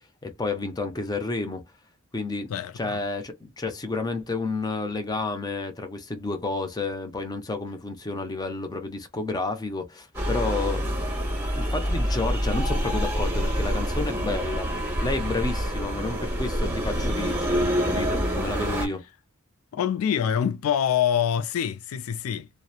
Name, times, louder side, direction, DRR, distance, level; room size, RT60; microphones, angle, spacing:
voice 1, 0.2-1.6 2.1-2.5 2.8-11.3 11.6-19.0, left 3 dB, 20° left, 0.5 m, -31 dB
voice 2, 2.5-3.0 19.7-22.5, left 8 dB, 80° left, 0.3 m, -25 dB
sound 1, 10.1-18.9, equal, 10° right, 1.0 m, -26 dB
2.8 x 2.0 x 2.3 m
head